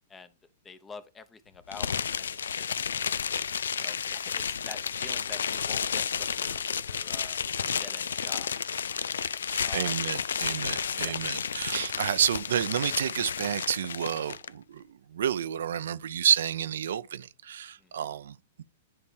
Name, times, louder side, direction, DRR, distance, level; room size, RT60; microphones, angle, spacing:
voice 1, 0.6-2.8 3.8-8.5 9.6-9.9 11.0-11.2 17.8-17.9, left 5 dB, 15° left, 0.8 m, -47 dB
sound 1, 1.7-14.5, left 7 dB, 85° left, 0.4 m, -32 dB
voice 2, 9.5-18.6, right 9 dB, 75° right, 0.5 m, -30 dB
9.7 x 3.5 x 3.3 m
hypercardioid pair, 125°, 0 cm